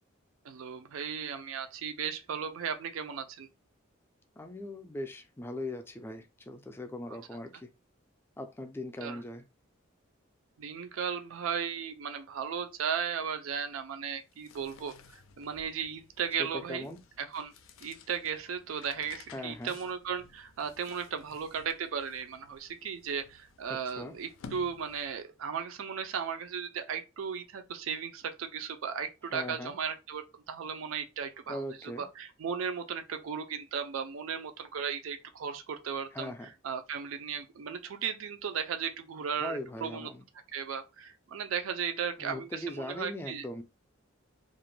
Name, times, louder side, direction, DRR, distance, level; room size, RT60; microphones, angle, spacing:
voice 1, 0.4-3.5 9.0-9.2 10.6-16.9 17.2-17.5 17.8-40.1 40.5-43.4, right 7 dB, 85° right, 0.4 m, -36 dB
voice 2, 4.4-7.7 8.4-9.4 16.4-17.0 19.3-19.7 23.7-24.1 29.3-29.7 31.5-32.1 36.1-36.5 39.4-40.2 42.2-43.6, left 1 dB, 10° left, 0.3 m, -40 dB
sound 1, 14.2-25.4, left 4 dB, 80° left, 0.4 m, -55 dB
2.4 x 2.1 x 3.1 m
head